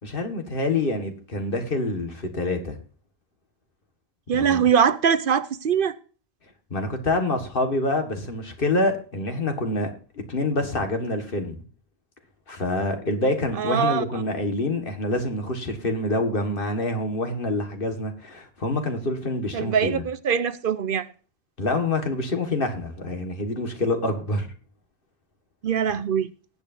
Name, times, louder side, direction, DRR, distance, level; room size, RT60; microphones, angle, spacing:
voice 1, 0.0-2.8 4.3-4.6 6.7-11.6 12.5-20.0 21.6-24.5, left 2 dB, 60° left, 1.9 m, -26 dB
voice 2, 4.3-6.0 13.6-14.0 19.5-21.0 25.6-26.3, right 7 dB, 65° right, 0.8 m, -22 dB
19.0 x 8.3 x 2.6 m
omnidirectional pair, 1.0 m